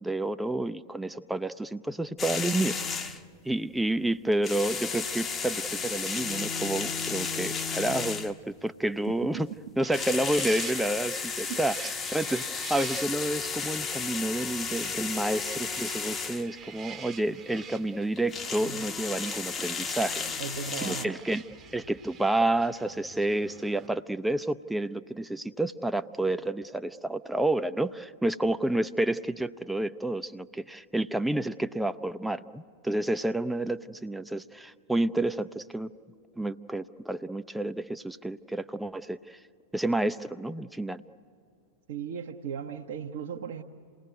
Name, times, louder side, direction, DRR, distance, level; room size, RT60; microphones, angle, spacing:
voice 1, 0.0-3.2 3.4-9.5 9.8-20.2 20.8-21.4 21.7-35.9 36.4-39.4 39.7-41.0, right 1 dB, 5° right, 11 dB, 0.6 m, -30 dB
sound 1, 2.2-3.3 4.3-8.5 9.8-16.5 18.2-21.1, left 5 dB, 20° left, 1.0 m, -33 dB
voice 2, 9.1-9.6 11.5-11.6 20.4-21.2 41.9-43.6, right 8 dB, 55° right, 1 dB, 0.9 m, -37 dB
sound 2, 9.8-23.9, right 7 dB, 25° right, 1.0 m, -46 dB
28.5 x 19.0 x 9.3 m, 2.4 s
figure-of-eight pair, 90°, 0 cm